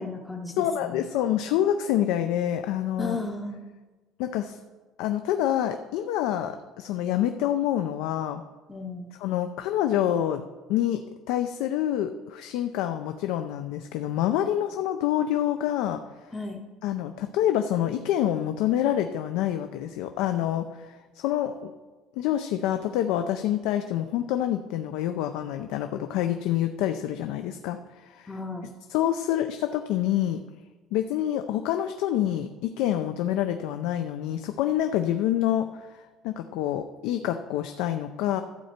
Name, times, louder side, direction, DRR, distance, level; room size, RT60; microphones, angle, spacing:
voice 1, 0.0-1.1 3.0-3.7 8.7-9.1 16.3-16.6 28.3-28.7, left 2 dB, 5° left, 0 dB, 0.6 m, -35 dB
voice 2, 0.6-3.2 4.2-4.6 5.0-8.4 9.2-10.4 10.7-16.0 16.8-21.7 22.2-27.8 28.1-28.3 28.9-30.4 30.9-35.7 36.2-38.4, left 11 dB, 75° left, 7 dB, 0.5 m, -27 dB
12.0 x 7.9 x 4.4 m, 1.3 s
cardioid pair, 175°, 0 cm